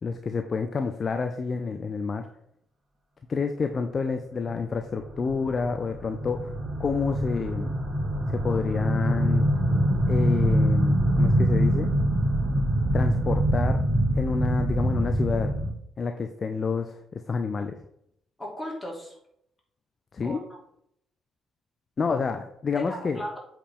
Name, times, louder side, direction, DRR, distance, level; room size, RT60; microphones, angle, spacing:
voice 1, 0.0-2.3 3.3-6.5 6.8-7.7 8.3-9.5 10.1-11.9 12.9-13.8 14.1-15.5 16.0-17.8 20.1-20.4 22.0-23.2, left 5 dB, 35° left, 7 dB, 0.6 m, -29 dB
sound 1, 4.9-15.7, right 1 dB, 45° right, 2.4 m, -24 dB
voice 2, 18.4-19.2 20.2-20.6 22.7-23.4, left 1 dB, 15° left, -3 dB, 3.1 m, -36 dB
8.1 x 4.9 x 3.7 m, 0.73 s
figure-of-eight pair, 45°, 0 cm